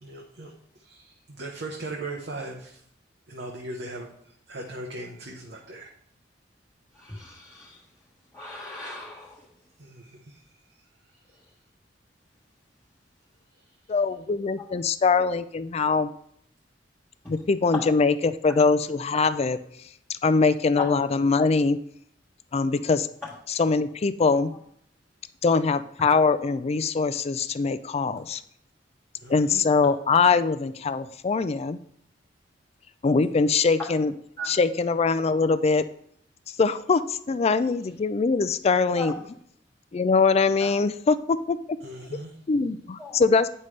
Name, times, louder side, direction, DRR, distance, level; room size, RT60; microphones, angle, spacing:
voice 1, 0.0-2.8 3.3-5.9 9.8-10.4 10.7-10.8 11.3-11.4 13.6-13.8 29.1-29.6 41.8-42.3, right 2 dB, 65° right, 1 dB, 0.9 m, -39 dB
voice 2, 7.0-7.7 8.3-9.3 34.4-34.5 39.0-39.1 40.6-40.7 43.0-43.1, equal, 10° left, -6 dB, 1.2 m, -38 dB
voice 3, 13.9-16.1 17.3-19.6 20.1-21.8 22.5-23.1 23.5-24.5 25.4-28.4 29.3-31.8 33.0-34.1 34.4-35.8 36.5-39.1 39.9-41.6 42.5-43.5, left 4 dB, 35° left, 12 dB, 0.4 m, -22 dB
9.1 x 5.5 x 3.2 m, 0.68 s
head